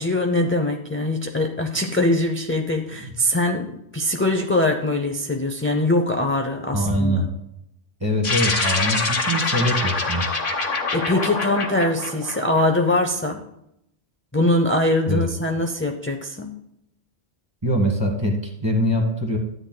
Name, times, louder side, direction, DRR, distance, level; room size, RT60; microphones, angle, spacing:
voice 1, 0.0-7.2 10.9-13.4 14.3-16.5, left 1 dB, 15° left, 3 dB, 0.5 m, -22 dB
voice 2, 6.7-7.3 8.0-10.3 15.1-15.3 17.6-19.4, equal, 25° right, 2 dB, 1.5 m, -23 dB
sound 1, 8.2-12.9, left 3 dB, 55° left, 1.3 m, -25 dB
13.0 x 8.9 x 2.2 m, 0.79 s
omnidirectional pair, 1.1 m